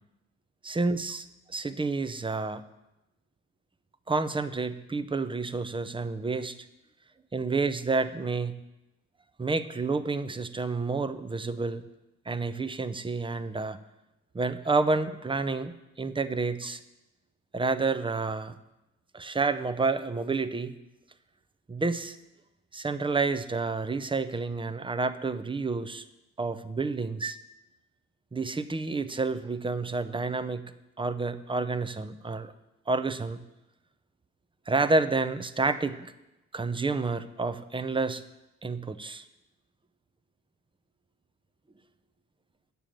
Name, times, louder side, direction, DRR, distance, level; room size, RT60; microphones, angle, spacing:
voice 1, 0.6-2.6 4.1-6.6 7.3-8.6 9.4-11.8 12.3-13.8 14.3-16.8 17.5-18.5 19.1-20.7 21.7-22.2 22.7-26.0 26.4-27.4 28.3-30.7 31.0-32.5 32.9-33.4 34.7-36.1 36.5-38.2 38.6-39.2, right 3 dB, 15° right, 12 dB, 0.6 m, -29 dB
8.7 x 6.9 x 7.6 m, 0.95 s
cardioid pair, 90°, 30 cm